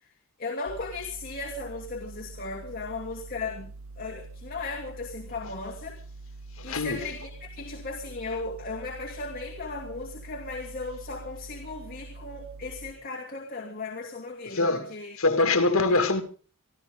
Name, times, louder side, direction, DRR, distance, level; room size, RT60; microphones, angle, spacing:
voice 1, 0.4-3.7 4.0-6.0 6.6-15.2 15.9-16.0, left 3 dB, 45° left, 2.5 m, -36 dB
sound 1, 0.7-12.9, right 3 dB, 75° right, 1.0 m, -45 dB
voice 2, 6.7-7.0 14.5-14.9 15.2-16.2, left 3 dB, 75° left, 2.1 m, -23 dB
25.0 x 14.0 x 3.7 m
head